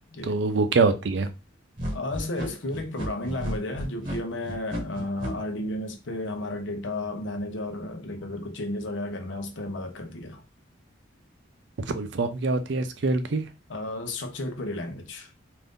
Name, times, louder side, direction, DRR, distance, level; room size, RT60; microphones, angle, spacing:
voice 1, 0.2-1.3 11.9-13.5, right 3 dB, 65° right, 0.5 m, -24 dB
sound 1, 1.8-5.3, equal, 40° right, 1.1 m, -33 dB
voice 2, 1.9-10.4 13.7-15.3, left 1 dB, 75° left, 0.7 m, -33 dB
2.6 x 2.5 x 3.5 m
head